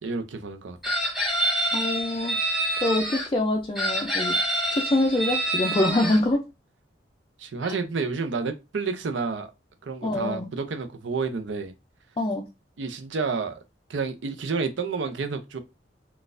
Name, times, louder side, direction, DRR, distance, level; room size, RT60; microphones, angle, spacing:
voice 1, 0.0-0.8 7.4-9.5 9.8-11.7 12.8-13.6 13.9-15.6, right 4 dB, 85° right, 0.6 m, -30 dB
Chicken rooster, 0.8-3.3 3.8-6.2, right 1 dB, ahead, 1.2 m, -27 dB
voice 2, 1.7-2.4 2.8-4.4 4.7-6.4 7.6-7.8 10.0-10.5 12.2-12.5, left 1 dB, 25° left, 0.4 m, -25 dB
4.0 x 2.3 x 2.5 m
head